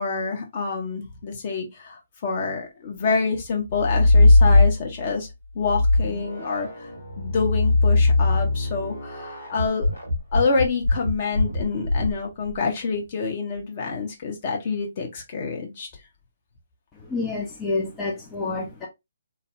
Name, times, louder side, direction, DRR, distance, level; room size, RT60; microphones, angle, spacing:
voice 1, 0.0-5.3 5.5-6.7 7.2-9.9 10.3-15.9, left 4 dB, 40° left, 0.9 m, -27 dB
sound 1, 3.7-5.1 5.6-12.6, left 2 dB, 80° left, 1.6 m, -20 dB
voice 2, 17.1-18.9, left 3 dB, 15° left, 0.5 m, -28 dB
2.7 x 2.1 x 2.6 m
figure-of-eight pair, 135°, 0 cm